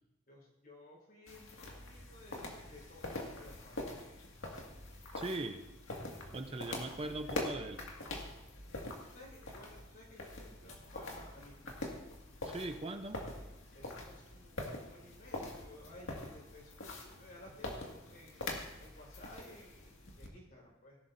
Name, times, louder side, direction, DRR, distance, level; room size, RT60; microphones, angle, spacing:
voice 1, 0.3-3.8 6.2-6.8 8.9-11.6 13.7-18.5 18.8-21.0, left 1 dB, 50° left, -3 dB, 4.8 m, -56 dB
sound 1, 1.3-20.3, left 2 dB, 80° left, 2.0 m, -44 dB
voice 2, 5.2-5.6 6.3-7.8 12.5-13.3, right 2 dB, 30° right, 7 dB, 0.6 m, -40 dB
18.0 x 11.5 x 2.7 m, 0.97 s
head